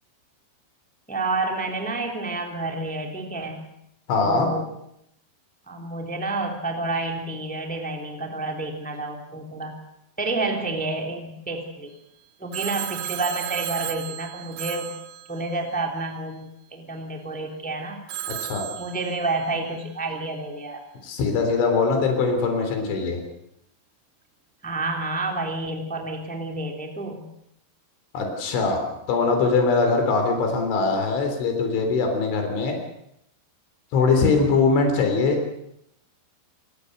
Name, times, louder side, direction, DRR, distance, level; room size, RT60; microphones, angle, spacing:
voice 1, 1.1-3.7 4.2-4.7 5.7-9.7 10.2-11.9 12.4-14.9 15.3-18.0 18.8-20.8 24.6-27.2, right 2 dB, 5° left, 2 dB, 2.1 m, -29 dB
voice 2, 4.1-4.5 18.5-18.6 21.0-23.2 28.1-32.8 33.9-35.4, left 4 dB, 80° left, 4 dB, 6.1 m, -22 dB
Telephone, 12.5-15.8 18.1-19.6, right 13 dB, 80° right, 3.4 m, -34 dB
26.0 x 19.5 x 6.7 m, 0.77 s
omnidirectional pair, 5.3 m